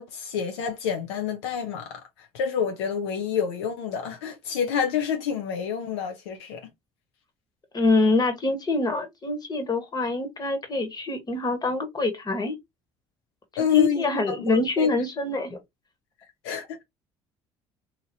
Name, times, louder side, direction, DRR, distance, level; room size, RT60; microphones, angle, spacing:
voice 1, 0.0-6.6 13.6-14.9 16.4-16.8, left 8 dB, 85° left, 0.6 m, -28 dB
voice 2, 7.7-12.5 13.7-15.6, left 2 dB, 30° left, 1.2 m, -25 dB
2.9 x 2.6 x 2.7 m
hypercardioid pair, 65°, 13 cm